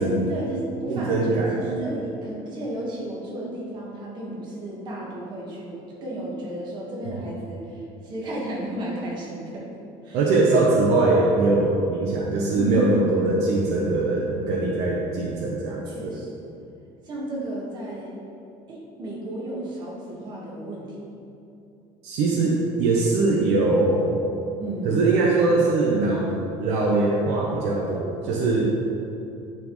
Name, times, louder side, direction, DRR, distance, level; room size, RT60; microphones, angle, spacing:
voice 1, 0.0-9.7 10.0-10.2 12.5-12.9 15.9-16.3 17.0-18.2 18.7-20.9 24.6-25.1 28.2-28.5, right 1 dB, 40° right, -4 dB, 1.5 m, -32 dB
voice 2, 0.9-1.6 10.1-16.1 22.0-24.0 24.8-26.3 26.6-28.7, right 3 dB, 75° right, -2 dB, 0.8 m, -22 dB
10.0 x 4.4 x 3.1 m, 2.7 s
cardioid pair, 175°, 12 cm